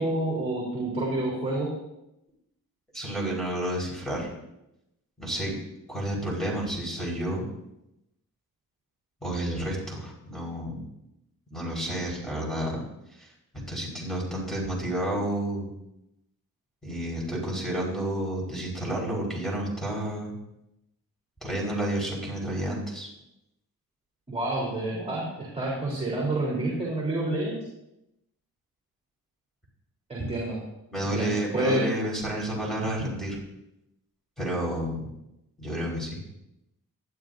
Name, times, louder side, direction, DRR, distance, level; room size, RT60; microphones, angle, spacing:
voice 1, 0.0-1.7 24.3-27.6 30.1-30.6 30.9-31.8, right 1 dB, 20° right, -3 dB, 3.8 m, -28 dB
voice 2, 2.9-4.3 5.2-5.6 5.9-7.4 9.2-10.8 11.5-12.8 13.2-13.3 13.7-15.7 16.8-20.3 21.4-23.1 30.9-33.4 34.4-35.1 35.6-36.2, right 1 dB, ahead, -4 dB, 4.8 m, -30 dB
20.0 x 12.0 x 2.7 m, 0.88 s
wide cardioid pair, 145°, 35 cm